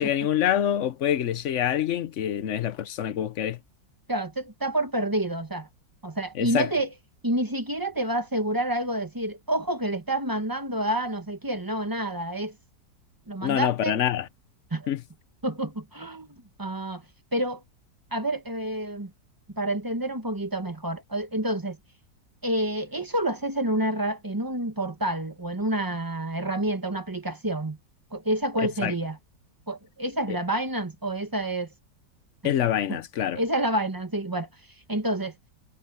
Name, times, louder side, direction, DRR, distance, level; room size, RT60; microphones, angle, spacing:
voice 1, 0.0-3.6 6.4-6.7 13.4-14.3 14.9-15.0 28.8-28.9 30.3-30.4 32.4-33.4, left 10 dB, 55° left, 0.9 m, -26 dB
voice 2, 4.1-5.7 6.0-6.9 7.2-12.5 13.3-14.0 14.7-14.9 15.4-17.0 17.3-17.6 18.1-19.1 19.5-21.8 22.4-27.8 28.1-29.2 29.7-31.7 32.9-33.0 33.4-34.5 34.9-35.3, right 1 dB, 15° right, 1.1 m, -28 dB
omnidirectional pair, 1.9 m